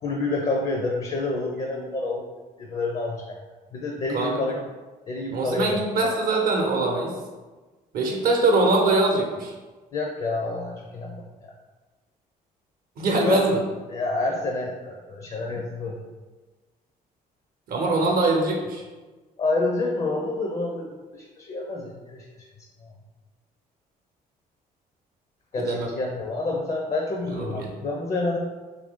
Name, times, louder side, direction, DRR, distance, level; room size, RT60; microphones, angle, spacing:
voice 1, 0.0-2.3 2.6-3.4 3.7-4.6 5.1-5.8 9.9-11.3 13.2-13.4 13.9-16.0 19.4-22.3 22.8-22.9 25.5-28.4, left 3 dB, 40° left, 0 dB, 0.5 m, -28 dB
voice 2, 4.1-4.6 5.3-7.1 7.9-9.5 13.0-13.6 17.7-18.8 25.6-25.9 27.3-27.7, right 2 dB, 65° right, 1 dB, 0.6 m, -23 dB
2.8 x 2.6 x 3.6 m, 1.3 s
cardioid pair, 105°, 17 cm